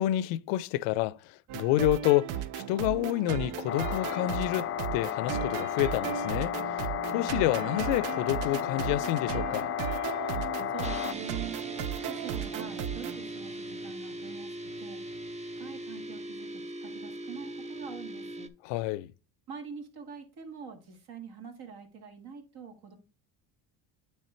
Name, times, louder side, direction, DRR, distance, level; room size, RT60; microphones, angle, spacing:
voice 1, 0.0-6.8 7.1-9.7 18.6-19.1, left 15 dB, 90° left, 0.5 m, -29 dB
sound 1, 1.5-13.2, right 10 dB, 90° right, 0.6 m, -36 dB
sound 2, 3.7-11.1, left 13 dB, 35° left, 0.4 m, -33 dB
voice 2, 10.7-11.6 12.0-15.0 15.6-18.5 19.5-23.0, right 6 dB, 60° right, 1.9 m, -45 dB
sound 3, 10.8-18.5, right 1 dB, 15° right, 0.7 m, -40 dB
9.0 x 3.3 x 4.3 m
cardioid pair, 95°, 42 cm